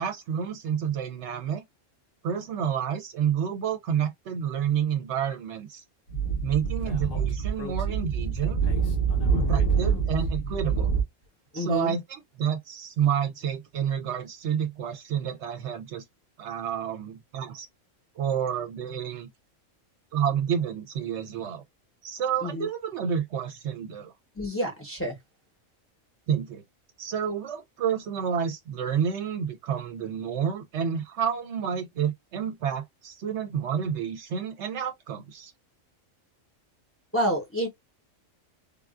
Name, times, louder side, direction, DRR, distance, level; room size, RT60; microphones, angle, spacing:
voice 1, 0.0-1.6 2.2-5.8 6.4-8.6 9.3-10.9 11.5-16.0 16.4-17.7 18.2-19.3 20.1-21.6 22.0-24.1 26.3-26.6 27.0-35.5, right 8 dB, 70° right, 0.8 m, -29 dB
Speech / Wind, 6.1-11.0, right 6 dB, 80° left, 1.5 m, -26 dB
voice 2, 11.5-12.0 22.4-22.7 24.3-25.2 37.1-37.7, equal, 10° left, 0.8 m, -28 dB
3.5 x 2.3 x 2.4 m
omnidirectional pair, 1.3 m